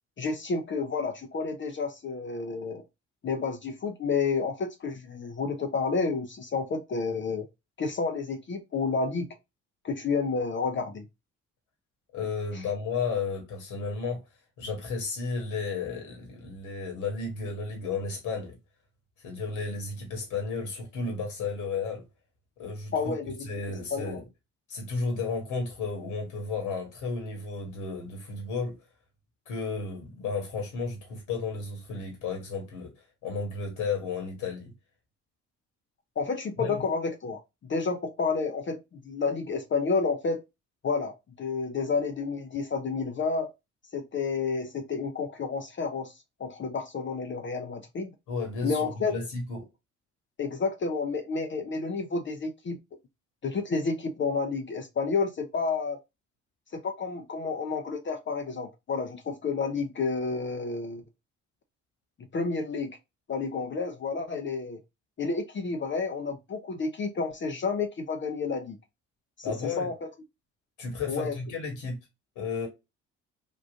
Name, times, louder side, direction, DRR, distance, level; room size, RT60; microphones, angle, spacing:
voice 1, 0.2-2.8 3.2-7.5 7.8-9.3 9.8-11.0 12.5-12.6 22.9-23.5 23.9-24.2 36.2-40.4 40.8-43.5 43.9-46.1 46.4-48.1 48.6-49.1 50.4-52.8 53.4-56.0 56.7-61.0 62.3-62.9 63.3-64.8 65.2-68.8 69.4-70.1 71.1-71.3, left 4 dB, 35° left, 0.6 m, -30 dB
voice 2, 12.1-14.2 14.6-18.6 19.2-22.0 22.6-23.1 23.4-24.2 24.7-28.8 29.5-32.9 33.2-34.7 36.6-36.8 48.3-49.7 69.4-69.9 70.8-72.0 72.3-72.7, left 4 dB, 65° left, 1.4 m, -33 dB
3.6 x 2.4 x 2.4 m
hypercardioid pair, 55°, 35 cm